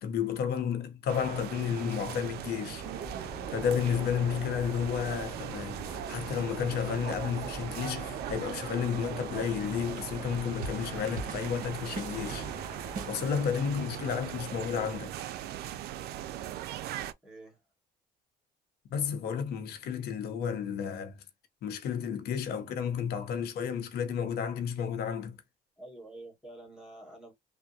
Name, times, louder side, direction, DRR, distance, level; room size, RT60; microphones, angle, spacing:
voice 1, 0.0-2.8 3.5-12.5 13.1-15.1 18.9-21.2 21.6-25.4, left 7 dB, 70° left, 0.7 m, -32 dB
sound 1, 1.1-17.1, right 12 dB, 70° right, 0.4 m, -39 dB
sound 2, 2.8-13.1, right 1 dB, 25° right, 2.1 m, -44 dB
sound 3, 10.6-10.9 11.2-13.3, right 3 dB, 50° right, 1.1 m, -41 dB
voice 2, 17.2-17.6 25.8-27.3, right 2 dB, 5° right, 1.4 m, -48 dB
3.4 x 2.1 x 2.7 m
cardioid pair, 110°, 17 cm